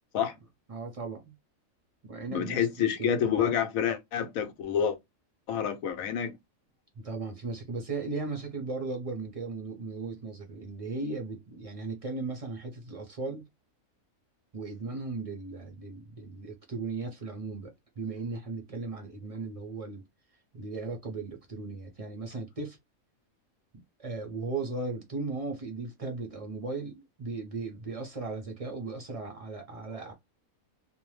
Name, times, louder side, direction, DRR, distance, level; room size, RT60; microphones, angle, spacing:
voice 1, 0.7-1.3 2.1-3.5 7.0-13.4 14.5-20.0 20.5-22.8 24.0-30.1, right 3 dB, 50° right, 0.4 m, -37 dB
voice 2, 2.3-5.0 5.5-6.4, left 8 dB, 85° left, 1.1 m, -28 dB
2.6 x 2.1 x 3.1 m
omnidirectional pair, 1.4 m